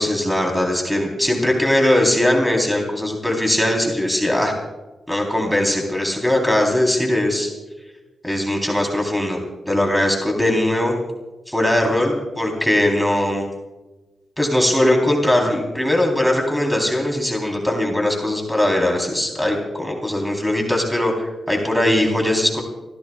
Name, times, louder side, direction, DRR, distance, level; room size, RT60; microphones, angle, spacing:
voice 1, 0.0-4.5 5.1-7.5 8.2-9.4 9.7-11.0 11.5-13.4 14.4-22.6, left 1 dB, 5° left, 0 dB, 3.8 m, -20 dB
29.5 x 16.0 x 2.4 m, 1.1 s
cardioid pair, 60°, 0 cm